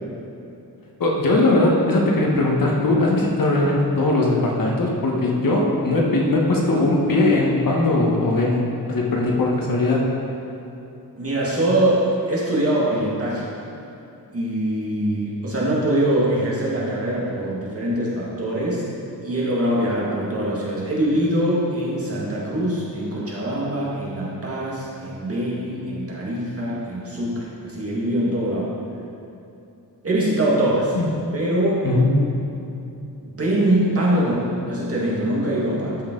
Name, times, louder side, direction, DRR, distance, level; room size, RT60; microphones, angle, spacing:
voice 1, 1.0-8.6 8.9-10.1 30.9-31.1 31.8-32.3, left 2 dB, 55° left, -2 dB, 1.4 m, -19 dB
voice 2, 11.2-13.5 14.3-18.8 19.2-28.7 30.0-31.0 31.3-31.8 33.2-36.0, right 1 dB, 35° right, -6 dB, 1.9 m, -23 dB
13.0 x 5.6 x 3.9 m, 2.8 s
wide cardioid pair, 145°, 40 cm